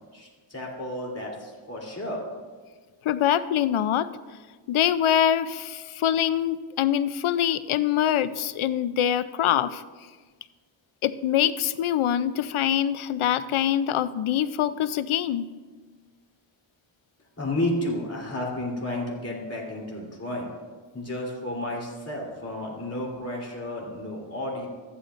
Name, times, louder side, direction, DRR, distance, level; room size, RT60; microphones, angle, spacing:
voice 1, 0.1-2.3 17.4-20.5 20.9-24.7, left 1 dB, 30° left, -2 dB, 3.3 m, -32 dB
voice 2, 3.0-4.1 4.7-9.8 11.0-15.4, left 10 dB, 80° left, 14 dB, 0.6 m, -24 dB
14.0 x 11.0 x 2.5 m, 1.4 s
cardioid pair, 70°, 48 cm